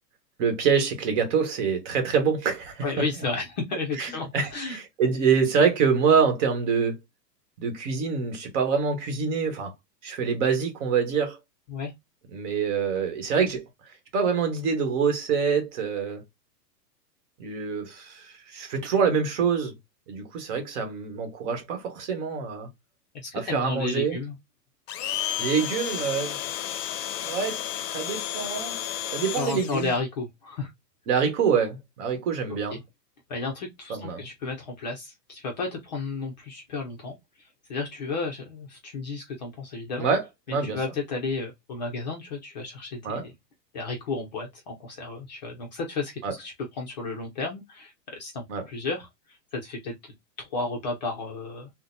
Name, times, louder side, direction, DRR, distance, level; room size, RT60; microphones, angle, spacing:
voice 1, 0.4-3.1 4.0-7.0 7.6-9.7 10.0-11.4 12.3-13.6 14.1-16.2 17.4-19.8 20.1-22.7 23.3-24.2 25.4-26.4 27.2-27.6 27.9-28.8 29.1-29.9 31.1-32.8 33.9-34.3 40.0-40.8 43.0-43.3 46.2-46.3 48.5-48.7, right 6 dB, 45° right, 1.3 m, -25 dB
voice 2, 2.8-4.8 11.7-11.9 23.1-24.4 29.4-30.7 32.7-32.8 33.3-40.1 40.7-43.3 43.7-51.7, left 3 dB, 30° left, 0.4 m, -33 dB
Domestic sounds home sounds, 24.9-30.0, left 12 dB, 80° left, 0.6 m, -32 dB
3.8 x 2.1 x 2.5 m
hypercardioid pair, 150°, 50 cm